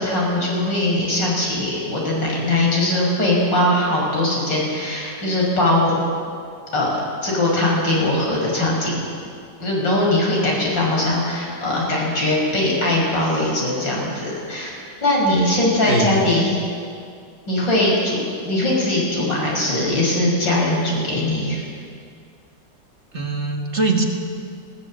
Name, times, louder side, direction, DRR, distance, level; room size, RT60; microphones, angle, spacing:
voice 1, 0.0-5.9 6.7-9.0 9.6-14.7 15.0-16.5 17.5-21.6, left 1 dB, 80° left, -3 dB, 6.5 m, -20 dB
voice 2, 15.9-16.3 23.1-24.1, right 2 dB, 40° right, 2 dB, 1.9 m, -22 dB
19.5 x 18.0 x 7.5 m, 2.3 s
omnidirectional pair, 2.0 m